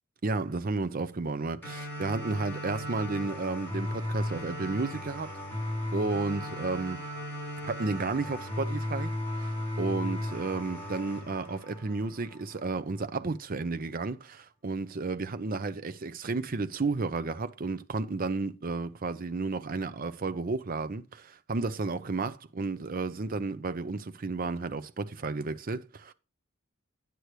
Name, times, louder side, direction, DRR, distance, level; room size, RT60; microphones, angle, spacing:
voice 1, 0.2-5.4 5.9-7.0 7.6-26.1, right 3 dB, 40° right, 0.6 m, -32 dB
sound 1, 1.6-12.6, left 1 dB, 10° left, 4.5 m, -36 dB
9.2 x 8.2 x 3.1 m
head